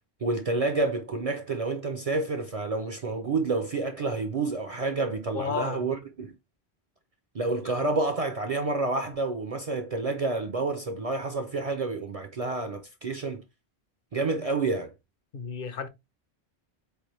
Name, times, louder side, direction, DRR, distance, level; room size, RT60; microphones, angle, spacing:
voice 1, 0.2-6.4 7.3-13.4 14.1-14.9, right 3 dB, 50° right, 0.5 m, -29 dB
voice 2, 5.3-5.8 15.3-15.9, left 6 dB, 60° left, 0.8 m, -32 dB
4.4 x 3.4 x 2.9 m
omnidirectional pair, 1.1 m